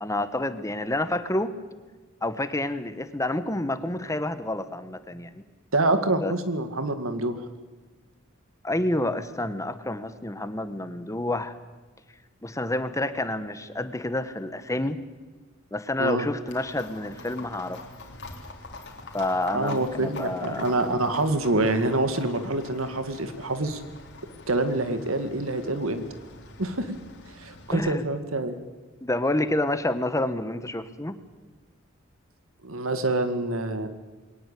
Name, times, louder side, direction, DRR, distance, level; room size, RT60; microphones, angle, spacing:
voice 1, 0.0-1.6 2.2-5.4 6.2-6.3 8.6-11.6 12.4-15.0 15.7-17.8 19.1-20.6 27.7-28.0 29.0-31.1, left 1 dB, 15° left, 11 dB, 1.2 m, -28 dB
voice 2, 5.7-7.5 16.0-16.3 19.5-23.8 24.5-26.0 26.6-26.9 27.4-28.6 32.6-33.9, right 2 dB, 80° right, 9 dB, 2.1 m, -26 dB
Livestock farm animals working animals, 16.5-27.7, left 3 dB, 60° left, 3.5 m, -44 dB
22.0 x 19.0 x 8.4 m, 1.3 s
head